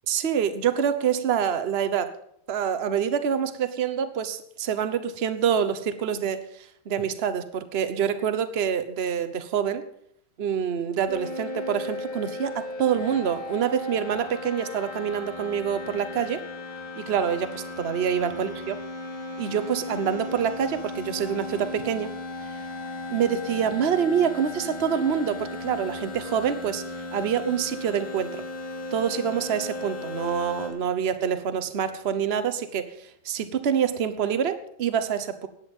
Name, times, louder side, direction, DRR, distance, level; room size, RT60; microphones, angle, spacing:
voice 1, 0.1-2.1 2.5-9.8 10.4-16.4 17.0-18.8 19.4-22.1 23.1-26.8 27.1-28.4 28.9-35.5, right 8 dB, 40° right, 11 dB, 1.0 m, -26 dB
sound 1, 11.1-30.7, left 2 dB, 85° left, 5.0 m, -36 dB
16.0 x 10.0 x 5.5 m, 0.73 s
omnidirectional pair, 2.3 m